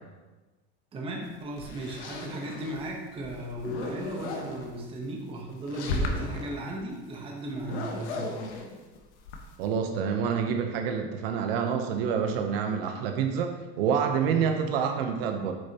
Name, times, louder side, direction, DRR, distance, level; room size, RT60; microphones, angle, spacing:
voice 1, 0.9-8.4 14.1-14.4, right 1 dB, 15° right, 0 dB, 0.9 m, -36 dB
sound 1, 1.3-2.9 3.2-4.7 5.5-6.5 7.6-9.7, left 2 dB, 80° left, 1.3 m, -35 dB
voice 2, 9.6-15.5, right 7 dB, 60° right, 5 dB, 0.8 m, -27 dB
8.6 x 6.9 x 2.9 m, 1.2 s
supercardioid pair, 170°, 33 cm